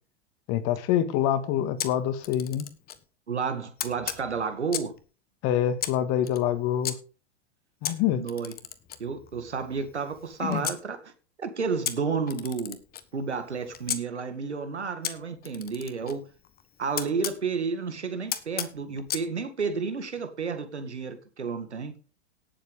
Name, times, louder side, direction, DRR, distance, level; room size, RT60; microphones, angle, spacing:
voice 1, 0.5-2.7 5.4-7.0 7.8-8.2 10.4-10.7, left 10 dB, 45° left, 1.9 m, -26 dB
Camera, 1.8-3.0 3.8-5.0 5.8-6.9 7.8-10.8 11.8-14.0 15.0-17.4 18.3-19.3, left 10 dB, 30° left, 1.4 m, -36 dB
voice 2, 3.3-5.0 8.1-8.5 9.0-11.0 11.4-12.8 13.1-16.2 16.8-21.9, right 5 dB, 90° right, 2.1 m, -31 dB
18.0 x 7.6 x 3.5 m
hypercardioid pair, 100°, 33 cm